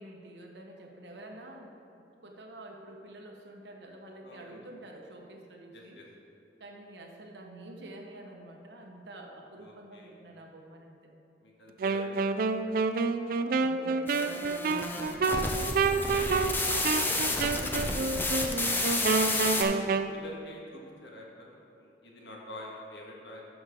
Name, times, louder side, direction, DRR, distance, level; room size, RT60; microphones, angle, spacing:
voice 1, 0.0-1.7 2.2-6.0 6.6-11.1 13.2-19.1 19.5-19.9, right 1 dB, 75° right, 1 dB, 1.2 m, -47 dB
voice 2, 4.2-4.6 5.7-6.1 9.6-10.2 11.4-12.8 14.9-15.1 19.5-23.5, left 1 dB, 75° left, -2 dB, 1.6 m, -47 dB
Wind instrument woodwind instrument, 11.8-20.1, right 4 dB, 50° right, 0.4 m, -29 dB
sound 1, 14.1-19.6, left 2 dB, 10° left, 0.6 m, -31 dB
12.0 x 6.2 x 3.7 m, 2.8 s
head